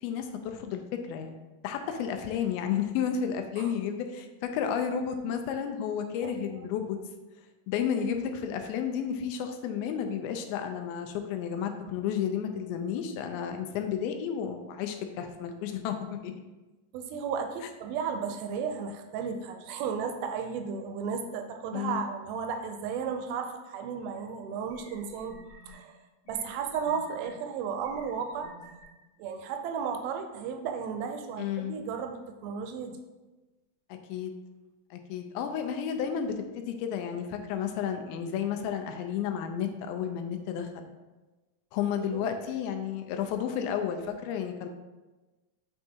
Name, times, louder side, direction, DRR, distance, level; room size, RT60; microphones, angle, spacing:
voice 1, 0.0-1.4 1.6-4.3 4.5-7.0 7.7-16.3 21.7-22.1 31.4-31.8 33.9-34.3 34.9-40.9 41.7-44.7, left 8 dB, 85° left, 5 dB, 2.3 m, -32 dB
voice 2, 6.2-6.7 16.9-25.4 25.6-26.0 26.3-28.5 29.2-33.0 42.1-42.3, right 6 dB, 80° right, 5 dB, 2.3 m, -34 dB
sound 1, 24.2-24.3 24.7-25.7 26.2-27.3 27.8-28.9, left 1 dB, 50° left, 1.9 m, -52 dB
7.6 x 4.5 x 2.8 m, 1.2 s
omnidirectional pair, 4.4 m